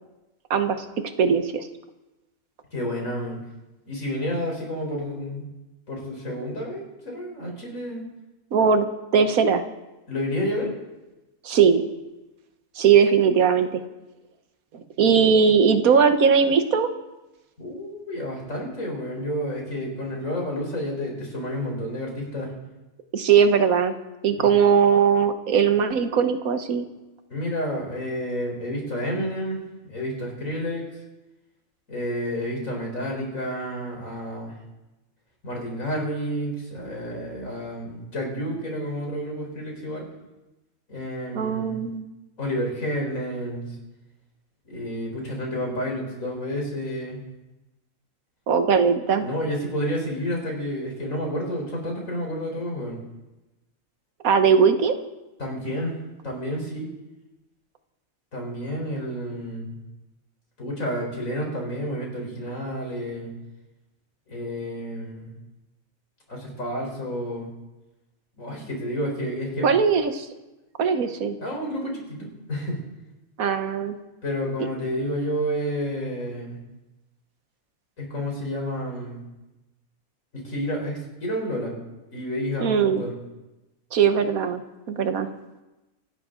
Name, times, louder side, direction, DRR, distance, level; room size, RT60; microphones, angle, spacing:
voice 1, 0.5-0.9 1.2-1.7 8.5-8.9 9.1-9.6 11.4-11.8 12.7-13.8 14.7-16.9 23.1-23.9 24.2-26.9 41.3-42.0 48.5-49.3 54.2-54.9 69.6-70.3 70.8-71.4 73.4-73.9 82.6-83.0 83.9-85.3, right 6 dB, 85° right, 9 dB, 1.5 m, -19 dB
voice 2, 2.7-3.4 3.9-5.5 5.9-8.1 10.1-10.7 17.6-22.5 24.4-24.5 27.3-29.6 29.9-31.0 31.9-34.6 35.4-40.1 40.9-41.8 42.4-43.8 44.7-47.2 49.2-53.0 55.4-56.0 56.2-56.9 58.3-59.8 60.6-63.3 64.3-65.3 66.3-67.5 68.4-69.7 71.4-72.8 74.2-76.6 78.0-79.2 80.3-81.7 82.1-83.1, equal, 70° left, 0 dB, 4.4 m, -30 dB
24.5 x 11.5 x 3.8 m, 1.1 s
omnidirectional pair, 1.5 m